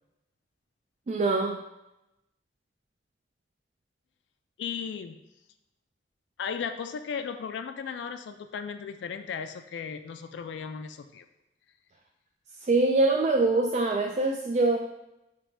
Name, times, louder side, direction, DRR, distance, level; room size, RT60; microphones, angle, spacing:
voice 1, 1.1-1.6 12.6-14.8, right 2 dB, 40° right, 2 dB, 0.3 m, -24 dB
voice 2, 4.6-5.2 6.4-11.2, left 6 dB, 80° left, 8 dB, 0.3 m, -36 dB
5.0 x 3.0 x 3.3 m, 0.90 s
head